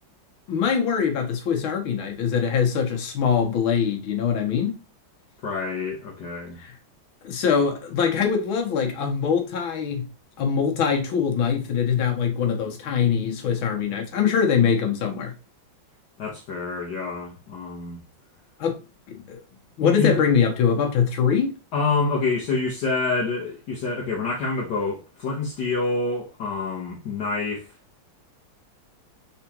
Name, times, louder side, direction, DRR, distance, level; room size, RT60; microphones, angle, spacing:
voice 1, 0.5-4.7 6.6-6.7 7.2-10.1 10.4-15.3 18.6-18.8 19.1-19.4 19.8-21.6, left 7 dB, 80° left, 1.9 m, -23 dB
voice 2, 5.4-6.6 16.2-18.0 19.8-20.2 21.7-27.7, left 4 dB, 60° left, 1.6 m, -27 dB
4.9 x 3.5 x 2.9 m
omnidirectional pair, 2.2 m